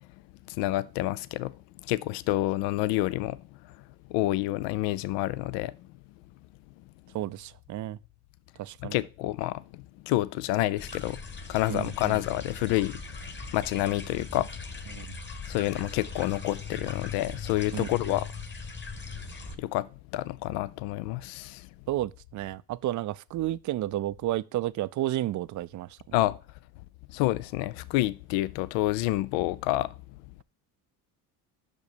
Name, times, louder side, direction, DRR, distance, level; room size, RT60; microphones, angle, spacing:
voice 1, 0.5-1.5 1.8-3.4 4.1-5.7 8.8-11.2 11.5-13.0 13.5-14.5 15.5-18.3 19.6-21.7 26.1-26.4 27.1-29.9, left 16 dB, 75° left, 0.6 m, -28 dB
voice 2, 7.1-8.0 8.6-9.0 11.7-12.2 14.9-15.1 17.7-17.9 21.9-26.0, right 14 dB, 45° right, 0.4 m, -32 dB
sound 1, 10.8-19.5, left 4 dB, 25° left, 1.4 m, -40 dB
6.2 x 5.2 x 6.7 m
supercardioid pair, 75°, 44 cm